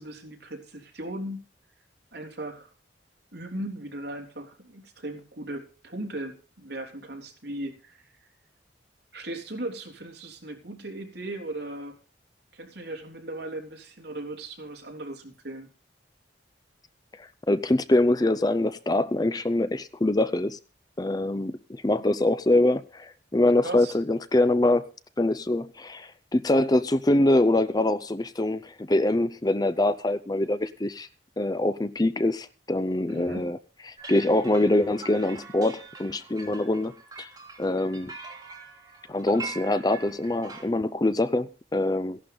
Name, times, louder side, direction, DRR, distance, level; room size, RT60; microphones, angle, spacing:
voice 1, 0.0-1.4 2.1-2.7 3.3-8.1 9.1-12.0 12.5-15.7 23.6-24.0 33.1-33.5, right 1 dB, 65° right, 3.5 m, -37 dB
voice 2, 17.2-20.6 21.0-24.9 25.2-31.1 31.4-33.6 34.1-36.9 37.2-37.3 37.6-38.1 39.1-42.2, left 1 dB, 20° left, 0.5 m, -24 dB
sound 1, 34.0-40.6, right 4 dB, 20° right, 2.8 m, -43 dB
16.0 x 11.5 x 3.9 m
head